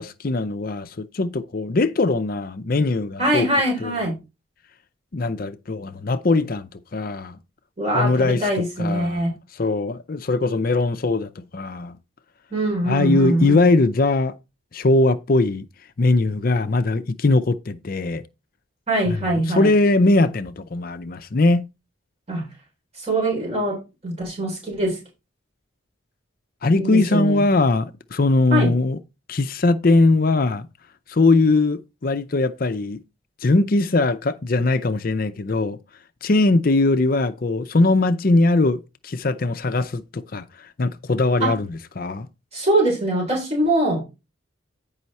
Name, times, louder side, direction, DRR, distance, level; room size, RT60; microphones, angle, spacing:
voice 1, 0.0-3.5 3.8-3.9 5.1-7.4 7.9-12.0 12.8-14.3 14.7-15.7 16.0-18.2 19.1-21.7 26.6-29.0 29.3-30.7 31.1-33.0 33.4-35.8 36.2-40.4 40.8-42.3, left 2 dB, 45° left, 0.5 m, -20 dB
voice 2, 3.2-4.1 7.8-9.4 12.5-13.6 18.9-19.7 22.3-22.4 23.0-25.0 26.8-27.4 28.5-28.7 41.4-41.5 42.5-44.0, right 1 dB, 30° right, 3.8 m, -22 dB
9.4 x 5.5 x 4.2 m
head